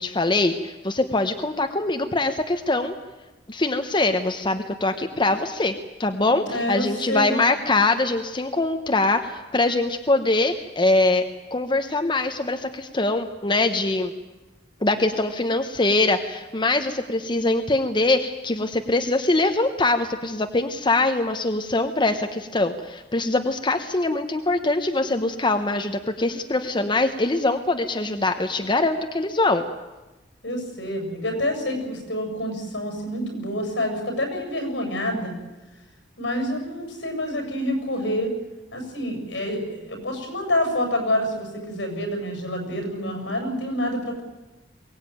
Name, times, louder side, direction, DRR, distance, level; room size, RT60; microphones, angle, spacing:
voice 1, 0.0-3.0 3.5-5.7 6.0-14.1 14.8-29.6, left 2 dB, 25° left, 6 dB, 1.0 m, -23 dB
voice 2, 6.3-7.4 30.4-35.4 36.2-38.3 38.7-44.2, left 1 dB, 75° left, 5 dB, 7.2 m, -27 dB
23.0 x 18.0 x 9.3 m, 1.1 s
head